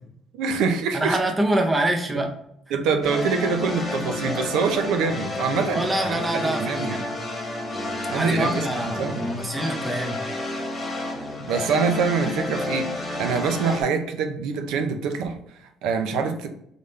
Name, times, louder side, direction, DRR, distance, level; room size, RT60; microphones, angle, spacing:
voice 1, 0.3-1.2 2.1-2.3 2.7-7.0 8.1-9.2 11.0-11.1 11.5-16.5, right 5 dB, 90° right, 6 dB, 0.6 m, -25 dB
voice 2, 0.9-2.3 5.7-7.0 8.1-10.2, right 1 dB, 15° right, 3 dB, 0.6 m, -25 dB
sound 1, 3.0-13.8, left 2 dB, 20° left, 1.2 m, -30 dB
4.0 x 3.6 x 3.2 m, 0.73 s
cardioid pair, 165°, 0 cm